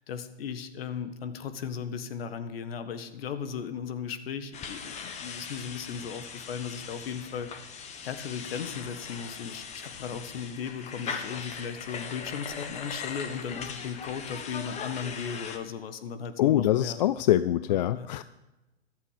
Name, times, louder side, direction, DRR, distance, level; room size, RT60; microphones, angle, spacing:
voice 1, 0.0-7.5 8.0-17.0 17.7-18.1, left 7 dB, 60° left, 11 dB, 1.6 m, -36 dB
sound 1, 4.5-15.6, left 6 dB, 20° left, 1.2 m, -40 dB
voice 2, 16.4-18.2, left 13 dB, 40° left, 15 dB, 0.4 m, -24 dB
14.0 x 12.5 x 5.1 m, 1.0 s
hypercardioid pair, 115°, 34 cm